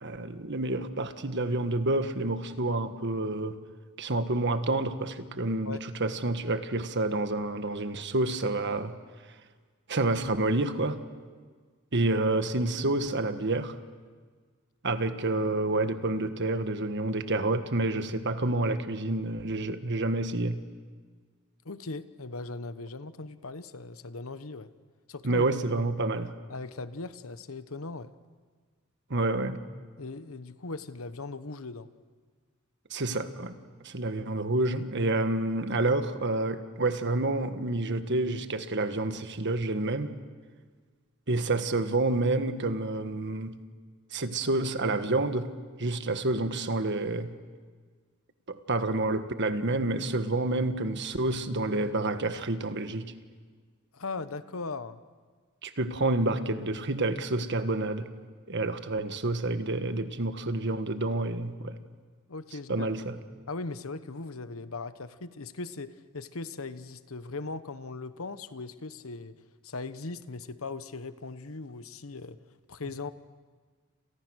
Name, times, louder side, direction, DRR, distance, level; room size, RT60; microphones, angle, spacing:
voice 1, 0.0-3.6 4.0-8.9 9.9-11.0 11.9-13.7 14.8-20.6 25.2-26.3 29.1-29.6 32.9-33.5 33.8-40.1 41.3-43.6 44.1-45.5 45.8-47.3 48.5-53.1 55.6-58.1 58.5-61.8 62.7-63.2, right 2 dB, 55° right, 9 dB, 1.5 m, -28 dB
voice 2, 21.6-24.7 25.1-25.5 26.5-28.1 30.0-31.9 53.9-55.0 62.3-62.9 63.5-69.4 69.6-72.4 72.7-73.1, left 3 dB, 80° left, 13 dB, 1.1 m, -39 dB
30.0 x 28.5 x 6.4 m, 1.5 s
head